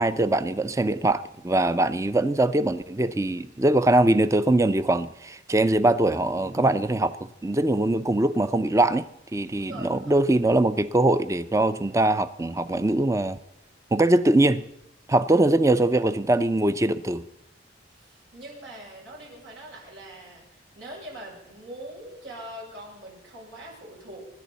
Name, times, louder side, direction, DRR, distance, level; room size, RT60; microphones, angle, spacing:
voice 1, 0.0-7.2 7.4-9.1 9.3-13.4 13.9-14.6 15.1-17.2, right 1 dB, 15° right, 0.5 m, -22 dB
voice 2, 9.6-10.2 17.9-24.2, right 1 dB, 85° right, 7.1 m, -42 dB
25.5 x 11.0 x 4.1 m
head